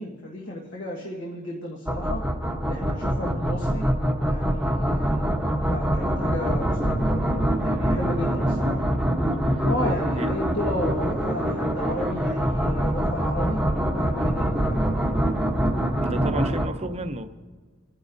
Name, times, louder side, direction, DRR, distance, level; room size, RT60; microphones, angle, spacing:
voice 1, 0.0-2.2 2.6-3.9 4.2-5.3 5.7-8.8 9.7-13.6 13.9-14.8, left 1 dB, 65° left, -3 dB, 1.5 m, -33 dB
sound 1, 1.9-16.7, equal, 5° right, 1.0 m, -24 dB
voice 2, 16.0-17.3, right 1 dB, 30° right, 8 dB, 0.7 m, -31 dB
29.5 x 10.0 x 2.7 m, 1.5 s
head